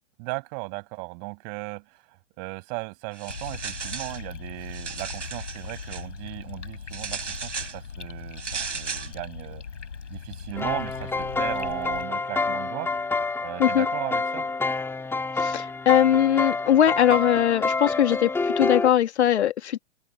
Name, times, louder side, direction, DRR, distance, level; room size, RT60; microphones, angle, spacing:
voice 1, 0.2-9.6 10.1-12.9 13.4-14.5, right 35 dB, 40° right, 6.8 m, -36 dB
sound 1, 3.1-4.2 4.6-6.0 6.9-7.8 8.4-9.1, right 5 dB, 85° right, 5.2 m, -35 dB
sound 2, 3.3-12.1, left 6 dB, 85° left, 5.4 m, -39 dB
sound 3, 10.5-18.9, left 3 dB, 5° left, 2.2 m, -28 dB
voice 2, 15.4-19.8, left 11 dB, 70° left, 2.2 m, -21 dB
open air
hypercardioid pair, 125°, 35 cm